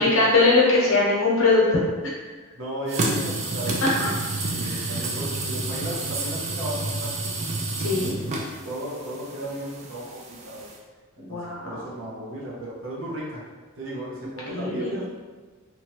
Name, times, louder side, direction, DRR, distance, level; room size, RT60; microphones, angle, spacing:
voice 1, 0.0-1.8 3.8-4.1 4.6-4.8 7.8-8.2 11.2-11.8 14.5-15.0, left 3 dB, 65° left, -5 dB, 0.8 m, -21 dB
voice 2, 2.5-4.0 4.5-7.3 7.9-8.2 8.6-10.7 11.2-13.4 13.8-15.1, right 1 dB, 65° right, -5 dB, 0.6 m, -35 dB
sound 1, 2.9-10.8, right 2 dB, 30° right, 0.3 m, -30 dB
3.0 x 2.3 x 2.8 m, 1.4 s
head